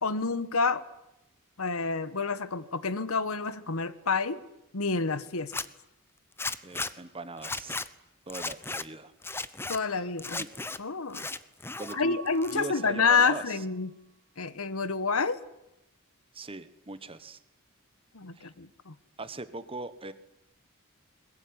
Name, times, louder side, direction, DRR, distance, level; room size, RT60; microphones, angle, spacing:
voice 1, 0.0-0.8 1.6-4.4 4.7-5.5 9.7-10.4 10.8-11.3 11.9-13.9 14.4-15.4 18.1-18.9, left 4 dB, 80° left, 15 dB, 1.3 m, -28 dB
Zipper (clothing), 5.4-5.7 6.4-6.9 7.4-7.9 8.3-8.8 9.2-9.8 10.2-10.8 11.1-11.9 12.3-12.9, left 3 dB, 10° left, 0.8 m, -35 dB
voice 2, 6.6-7.8 8.3-9.1 9.9-10.0 10.3-10.5 11.8-12.2 12.5-13.6 16.3-17.4 18.3-18.5 19.2-20.1, right 2 dB, 25° right, 13 dB, 1.4 m, -40 dB
Mallet percussion, 11.9-13.7, right 7 dB, 75° right, 3.2 m, -48 dB
21.5 x 21.0 x 9.8 m, 0.90 s
head